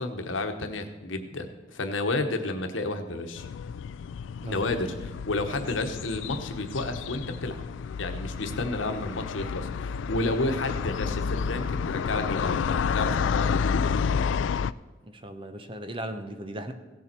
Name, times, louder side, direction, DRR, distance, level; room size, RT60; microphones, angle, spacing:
voice 1, 0.0-3.4 4.4-7.6 8.0-13.9, left 2 dB, 90° left, 7 dB, 1.1 m, -31 dB
sound 1, 3.4-14.7, left 6 dB, 70° left, 0.3 m, -30 dB
voice 2, 4.4-4.8 15.2-16.7, right 1 dB, 30° right, 7 dB, 0.9 m, -37 dB
16.5 x 7.0 x 4.5 m, 1.2 s
head